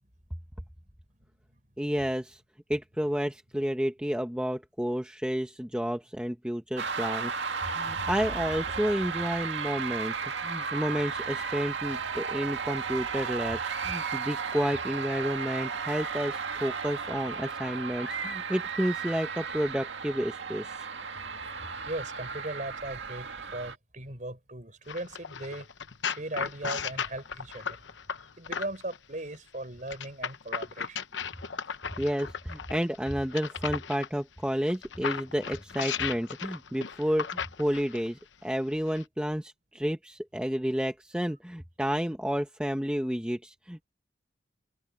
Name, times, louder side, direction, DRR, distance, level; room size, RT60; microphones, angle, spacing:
voice 1, 1.8-2.4 2.7-7.3 7.7-20.9 32.0-43.8, equal, 5° right, 1.0 m, -31 dB
sound 1, 6.8-23.8, right 5 dB, 75° right, 2.0 m, -34 dB
voice 2, 21.8-25.7 26.0-27.8 28.4-31.0, right 1 dB, 40° right, 4.8 m, -38 dB
sound 2, 24.9-29.0 29.9-34.1 34.7-38.1 38.9-39.0, left 6 dB, 75° left, 0.9 m, -36 dB
head